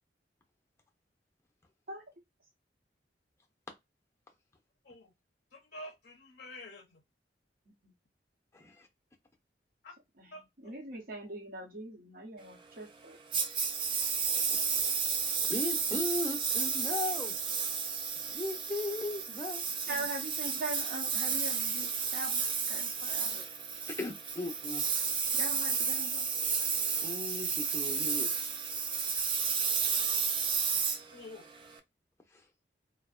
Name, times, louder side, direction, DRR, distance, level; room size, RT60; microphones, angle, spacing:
voice 1, 5.5-7.0 9.8-9.9 10.3-10.8 26.2-26.3 26.7-27.0 31.1-31.5, left 1 dB, 55° left, 0.5 m, -49 dB
voice 2, 8.5-8.9 15.5-17.4 18.2-19.6 23.3-23.4 23.9-24.9 27.0-28.3 32.3-32.4, left 2 dB, 15° left, 0.6 m, -37 dB
voice 3, 10.2-13.2 19.9-23.4 25.3-26.3, right 1 dB, 55° right, 0.9 m, -42 dB
Engine, 13.3-31.8, right 6 dB, 30° right, 0.4 m, -32 dB
2.5 x 2.1 x 2.4 m
head